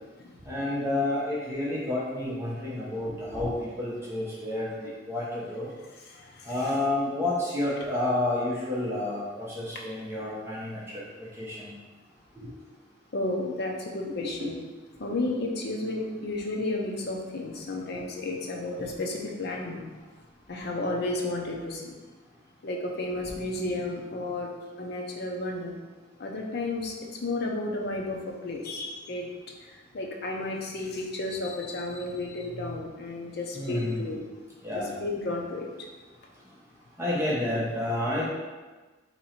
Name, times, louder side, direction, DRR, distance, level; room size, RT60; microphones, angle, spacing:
voice 1, 0.5-5.7 6.5-11.0 11.4-11.7 14.2-14.3 17.9-18.0 18.8-18.9 33.5-34.1 34.6-34.9 37.0-38.3, left 1 dB, 15° right, -7 dB, 0.8 m, -30 dB
voice 2, 5.9-6.7 13.1-14.6 15.0-19.8 20.5-21.9 22.6-24.5 24.8-25.7 26.2-27.0 27.2-29.3 29.6-34.2 34.7-35.7, left 2 dB, 55° left, 0 dB, 0.7 m, -32 dB
3.8 x 2.9 x 4.3 m, 1.3 s
head